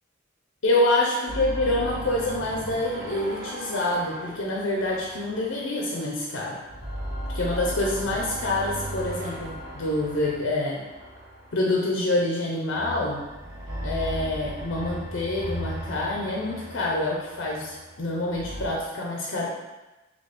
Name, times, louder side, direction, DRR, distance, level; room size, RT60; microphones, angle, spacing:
voice 1, 0.6-6.6 7.3-10.8 11.5-13.2 13.8-19.5, left 2 dB, 75° left, -2 dB, 0.6 m, -26 dB
sound 1, 1.3-6.2 6.6-11.9 12.7-18.7, equal, 50° right, 0.9 m, -36 dB
4.1 x 2.9 x 3.3 m, 1.1 s
head